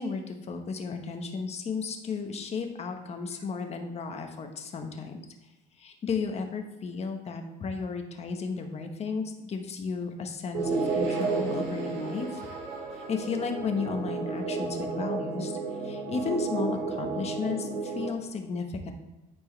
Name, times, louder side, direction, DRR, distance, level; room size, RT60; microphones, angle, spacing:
voice 1, 0.0-5.2 5.8-12.4 13.1-15.5 15.8-18.9, left 5 dB, 40° left, 4 dB, 1.2 m, -34 dB
sound 1, 10.5-18.1, right 4 dB, 75° right, 2.2 m, -32 dB
11.5 x 4.6 x 3.3 m, 1.1 s
cardioid pair, 115°, 17 cm